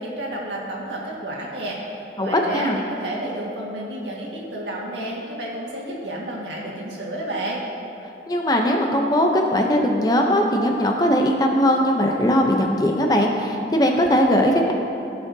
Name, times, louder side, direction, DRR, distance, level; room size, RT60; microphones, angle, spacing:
voice 1, 0.0-7.6, right 1 dB, 90° right, -3 dB, 1.7 m, -31 dB
voice 2, 2.2-2.8 8.3-14.7, equal, 20° left, 1 dB, 0.7 m, -19 dB
15.0 x 6.0 x 2.8 m, 2.8 s
head